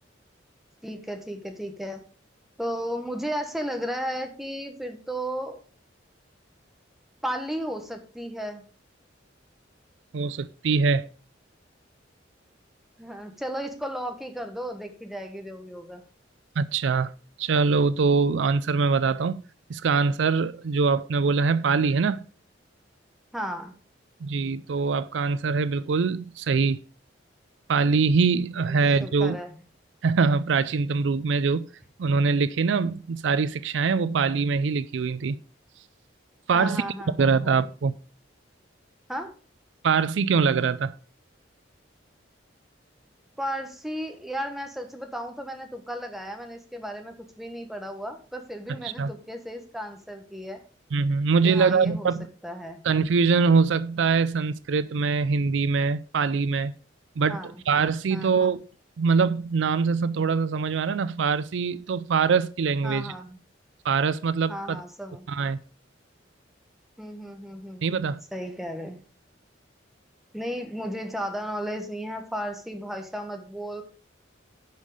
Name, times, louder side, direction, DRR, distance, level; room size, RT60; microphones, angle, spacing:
voice 1, 0.8-2.0 2.6-5.6 7.2-8.6 13.0-16.0 23.3-23.8 28.6-28.8 29.0-29.5 36.5-37.6 39.1-39.3 43.4-50.6 51.4-52.1 52.4-52.8 57.3-57.6 58.1-58.5 62.8-63.4 64.5-65.3 67.0-67.8 68.3-69.0 70.3-73.8, equal, ahead, 1.2 m, -34 dB
voice 2, 10.1-11.1 16.6-17.1 17.4-19.4 19.7-22.2 24.2-26.8 27.7-29.4 30.0-31.7 32.0-35.4 36.5-36.8 37.2-37.9 39.8-40.9 48.8-49.1 50.9-52.3 52.8-56.7 57.2-58.6 59.0-63.1 63.8-64.8 65.3-65.6 67.8-68.2, right 5 dB, 70° right, 0.4 m, -23 dB
10.5 x 5.5 x 4.9 m
head